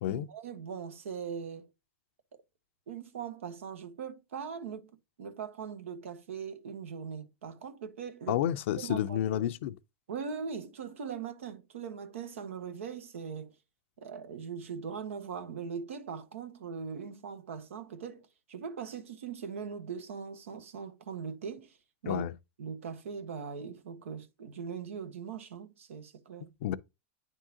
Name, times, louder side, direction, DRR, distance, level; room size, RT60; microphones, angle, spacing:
voice 1, 0.1-1.7 2.9-4.9 5.2-8.4 8.8-9.4 10.1-13.5 14.0-21.8 22.0-22.2 22.6-26.5, right 6 dB, 85° right, 1.0 m, -40 dB
voice 2, 8.3-9.7 22.1-22.3 26.6-26.8, left 11 dB, 70° left, 0.5 m, -30 dB
9.7 x 3.7 x 2.8 m
hypercardioid pair, 110°, 7 cm